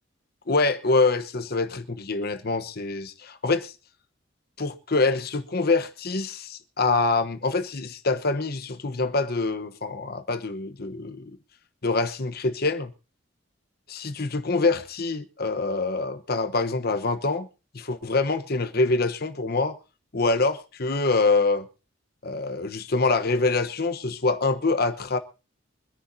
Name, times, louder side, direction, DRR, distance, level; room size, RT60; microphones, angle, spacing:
voice 1, 0.5-3.7 4.6-11.4 11.8-12.9 13.9-17.5 17.7-19.8 20.1-21.7 22.2-25.2, left 3 dB, 55° left, 1.1 m, -25 dB
24.5 x 10.0 x 2.8 m
head